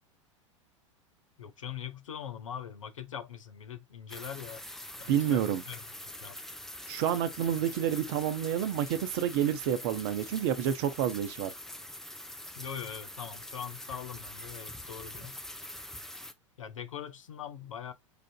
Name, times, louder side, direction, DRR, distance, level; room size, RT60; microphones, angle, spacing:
voice 1, 1.4-4.7 5.0-6.4 12.5-15.4 16.6-17.9, left 8 dB, 80° left, 0.6 m, -42 dB
sound 1, 4.1-16.3, left 1 dB, ahead, 0.4 m, -44 dB
voice 2, 5.1-5.6 6.9-11.5, right 10 dB, 50° right, 0.7 m, -29 dB
4.9 x 2.5 x 2.2 m
figure-of-eight pair, 85°, 16 cm